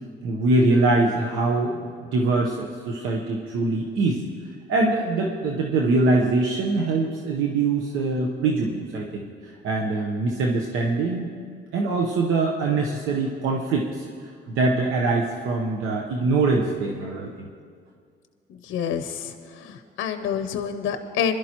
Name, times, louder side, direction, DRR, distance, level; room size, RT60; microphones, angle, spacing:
voice 1, 0.2-1.8 2.1-4.2 4.7-11.3 11.7-17.5, right 3 dB, 85° right, -1 dB, 0.9 m, -23 dB
voice 2, 18.6-21.3, left 8 dB, 85° left, 8 dB, 0.7 m, -28 dB
21.0 x 11.5 x 3.0 m, 2.1 s
cardioid pair, 90°, 20 cm